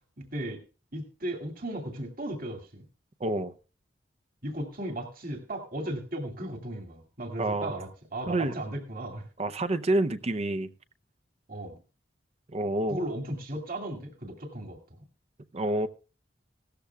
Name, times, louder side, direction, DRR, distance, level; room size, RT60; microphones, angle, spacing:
voice 1, 0.2-0.6 0.9-2.8 4.4-9.3 11.5-11.8 12.9-14.8, right 1 dB, 55° right, 3 dB, 2.3 m, -36 dB
voice 2, 3.2-3.5 7.4-7.8 8.3-8.6 9.4-10.7 12.5-13.1 15.5-15.9, right 2 dB, 35° right, 10 dB, 0.6 m, -28 dB
17.0 x 13.5 x 2.3 m, 0.33 s
head